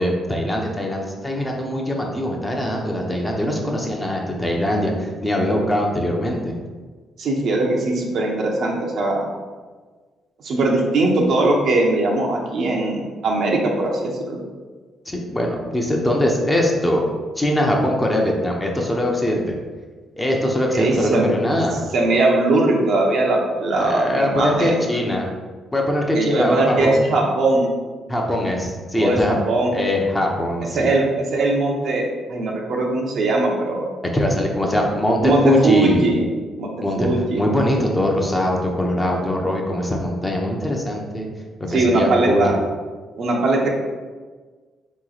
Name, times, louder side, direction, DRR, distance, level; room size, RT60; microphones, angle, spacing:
voice 1, 0.0-6.5 15.1-17.1 17.4-19.5 20.2-21.9 23.8-25.3 25.7-27.0 28.1-29.4 29.7-30.9 34.1-36.1 36.8-37.1 37.4-41.3 41.7-42.4, left 1 dB, 15° left, 0 dB, 0.8 m, -22 dB
voice 2, 7.2-9.3 10.4-14.4 20.7-21.3 21.9-24.9 26.1-27.7 29.0-29.7 30.7-33.9 35.2-36.2 36.6-36.7 37.0-37.4 41.7-42.5 43.2-43.7, right 2 dB, 65° right, -1 dB, 0.8 m, -20 dB
3.8 x 3.1 x 3.9 m, 1.4 s
cardioid pair, 90°, 0 cm